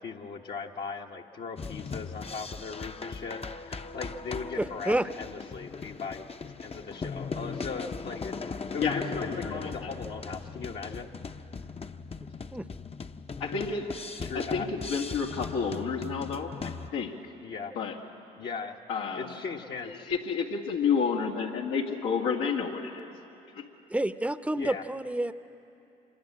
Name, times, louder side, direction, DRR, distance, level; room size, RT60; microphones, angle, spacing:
voice 1, 0.0-6.2 6.6-11.1 14.1-14.7 17.4-17.7 18.3-18.8 19.1-20.1 24.6-24.8, left 5 dB, 55° left, 0 dB, 1.4 m, -38 dB
sound 1, 1.6-16.9, left 4 dB, 30° left, 0.9 m, -39 dB
voice 2, 4.6-5.1 12.5-12.7 23.9-25.3, right 1 dB, 5° right, 13 dB, 0.8 m, -29 dB
voice 3, 8.8-9.9 13.4-13.9 14.3-17.2 17.7-18.0 18.9-19.4 20.0-23.1 23.6-23.7, left 5 dB, 85° left, 0 dB, 2.2 m, -30 dB
26.5 x 21.5 x 7.6 m, 2.8 s
hypercardioid pair, 55°, 20 cm